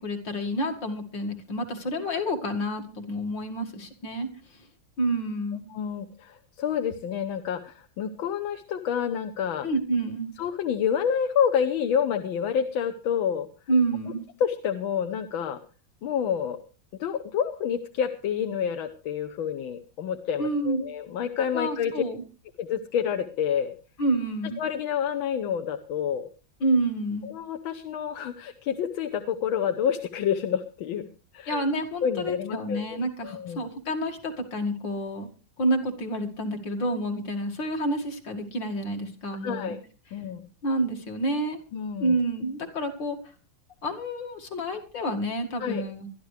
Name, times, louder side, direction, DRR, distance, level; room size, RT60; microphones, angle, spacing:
voice 1, 0.0-4.3 4.5-4.7 5.0-5.7 9.6-10.3 13.7-14.2 20.4-20.8 21.5-22.2 24.0-24.6 26.6-27.3 31.5-35.3 35.6-39.7 40.6-41.6 42.0-43.2 43.8-46.1, right 1 dB, 70° left, 3 dB, 2.9 m, -28 dB
voice 2, 5.7-9.7 10.4-13.5 14.4-15.6 16.0-16.6 17.0-22.0 22.6-23.7 24.6-26.3 27.2-31.1 31.3-31.6 32.0-33.7 39.4-39.8 40.1-40.5 41.7-42.2 45.6-45.8, left 8 dB, 85° left, 7 dB, 1.7 m, -28 dB
22.0 x 13.0 x 3.3 m, 0.34 s
omnidirectional pair, 2.1 m